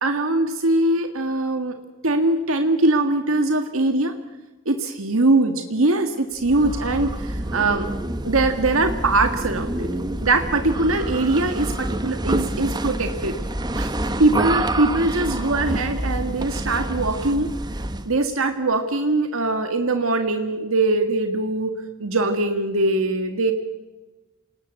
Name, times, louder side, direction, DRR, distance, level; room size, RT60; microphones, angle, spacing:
voice 1, 0.0-1.7 2.0-4.1 4.7-7.9 8.3-9.9 10.2-13.4 13.7-13.9 14.2-17.5 18.1-23.5, right 2 dB, 85° right, 6 dB, 1.8 m, -22 dB
sound 1, 6.4-18.1, right 1 dB, 20° right, 1.1 m, -27 dB
28.0 x 19.5 x 8.1 m, 1.1 s
head